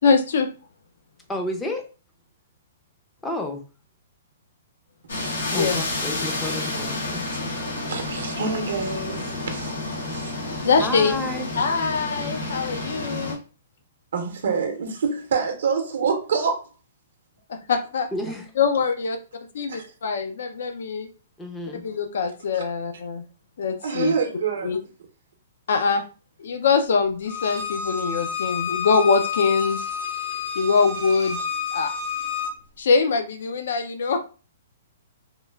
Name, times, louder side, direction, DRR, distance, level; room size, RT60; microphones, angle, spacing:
voice 1, 0.0-0.5 5.5-5.8 10.6-11.1 11.6-13.4 17.7-18.1 18.6-19.2 19.5-21.1 21.8-23.2 23.6-24.1 24.6-24.8 25.7-26.0 26.4-29.9 30.6-31.9 32.8-34.2, left 5 dB, 70° left, 0.4 m, -23 dB
voice 2, 1.3-1.8 3.2-3.6 5.5-7.2 10.8-11.6 18.1-18.5 21.4-21.8, left 2 dB, 10° left, 0.4 m, -30 dB
sound 1, 5.1-13.3, left 2 dB, 90° left, 1.0 m, -30 dB
voice 3, 7.9-10.3 14.1-16.7 19.7-19.9 23.8-24.7, right 5 dB, 75° right, 0.6 m, -27 dB
Bowed string instrument, 27.3-32.5, left 6 dB, 35° left, 0.8 m, -29 dB
3.0 x 2.4 x 2.2 m
hypercardioid pair, 160°, 0 cm